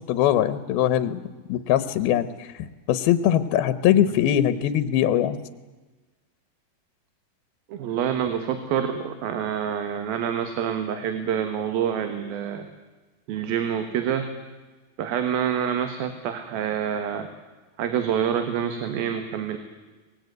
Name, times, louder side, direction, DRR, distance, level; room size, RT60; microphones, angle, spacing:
voice 1, 0.1-1.2 1.5-5.4, left 11 dB, 85° left, 13 dB, 2.8 m, -22 dB
voice 2, 7.7-12.7 13.3-14.3 15.0-17.3 17.8-19.6, right 8 dB, 80° right, 8 dB, 3.3 m, -27 dB
24.5 x 20.0 x 9.4 m, 1.3 s
omnidirectional pair, 4.3 m